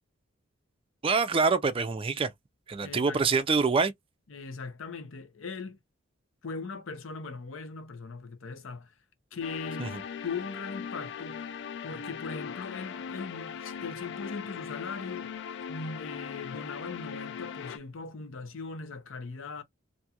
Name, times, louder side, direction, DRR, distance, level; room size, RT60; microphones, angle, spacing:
voice 1, 1.0-2.3 2.7-3.9 9.8-10.0, right 4 dB, 25° right, 0.4 m, -25 dB
voice 2, 2.8-3.2 4.3-5.8 6.4-8.9 9.3-11.5 11.8-15.4 15.7-19.6, left 4 dB, 80° left, 0.7 m, -39 dB
sound 1, 9.4-17.8, left 7 dB, 60° left, 0.3 m, -39 dB
2.6 x 2.3 x 2.7 m
head